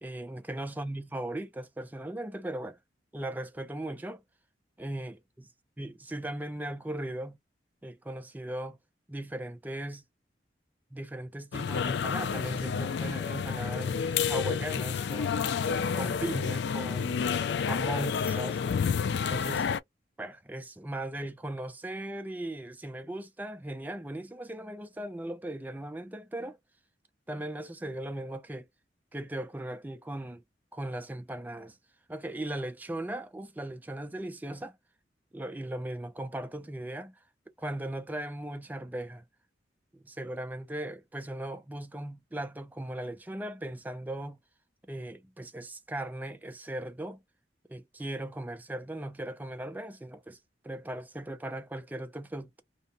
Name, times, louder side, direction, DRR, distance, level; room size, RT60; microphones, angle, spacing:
voice 1, 0.0-2.8 3.1-4.2 4.8-5.5 5.8-7.4 7.8-8.8 9.1-10.0 10.9-15.5 15.9-17.3 17.6-18.6 19.3-19.7 20.2-26.6 27.3-28.7 29.1-30.4 30.7-31.8 32.1-34.8 35.3-37.2 37.6-39.2 39.9-44.4 44.9-47.2 47.7-50.4 50.6-52.6, right 1 dB, 10° right, 0.3 m, -38 dB
sound 1, 11.5-19.8, left 6 dB, 65° left, 0.3 m, -30 dB
2.8 x 2.1 x 2.6 m
head